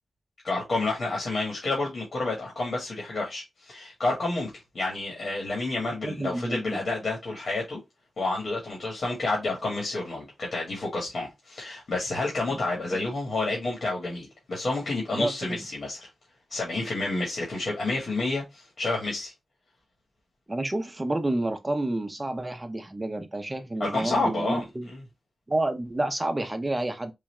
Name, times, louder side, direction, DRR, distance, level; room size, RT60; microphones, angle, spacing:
voice 1, 0.4-4.5 4.7-7.8 8.2-16.1 16.5-19.3 23.8-25.0, left 2 dB, 65° left, 1.5 m, -29 dB
voice 2, 6.0-6.8 12.5-12.6 15.1-15.3 20.5-24.9 25.5-27.1, right 2 dB, 25° right, 0.7 m, -29 dB
3.9 x 2.3 x 3.1 m
cardioid pair, 70°, 0 cm